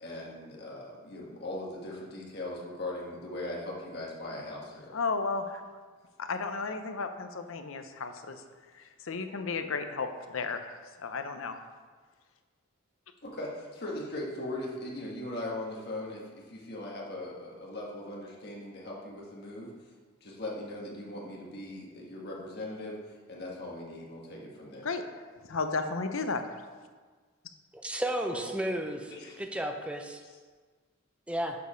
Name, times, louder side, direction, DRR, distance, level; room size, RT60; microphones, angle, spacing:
voice 1, 0.0-4.9 13.2-19.7 20.2-24.9 28.3-28.4 29.1-29.4 30.2-30.3, left 1 dB, 50° left, -3 dB, 1.5 m, -39 dB
voice 2, 4.9-5.6 6.2-8.4 9.0-11.6 24.8-26.4, left 4 dB, 75° left, 7 dB, 0.6 m, -33 dB
voice 3, 27.7-29.1 29.4-30.2 31.3-31.6, right 1 dB, 5° right, 4 dB, 0.5 m, -33 dB
6.8 x 5.1 x 5.0 m, 1.5 s
head